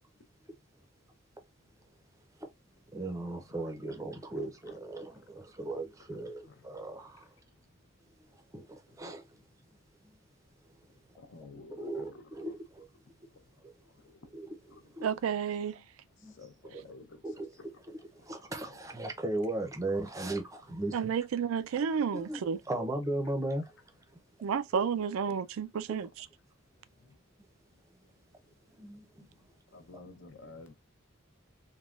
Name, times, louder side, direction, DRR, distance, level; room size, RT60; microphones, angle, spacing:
voice 1, 2.9-7.3 8.5-9.2 11.8-12.9 13.6-13.7 14.3-14.6 14.9-15.1 16.2-16.3 16.7-16.9 17.2-17.5 17.9-21.1 22.1-23.6 25.9-26.0 28.8-29.0, right 2 dB, 15° right, 0.5 m, -37 dB
voice 2, 11.2-12.2 14.0-14.2 14.7-14.8 16.4-17.1 17.6-17.7 29.7-30.7, left 3 dB, 65° left, 0.6 m, -50 dB
voice 3, 15.0-15.7 20.9-22.6 24.4-26.3, right 7 dB, 85° right, 0.4 m, -31 dB
3.4 x 2.2 x 2.3 m
head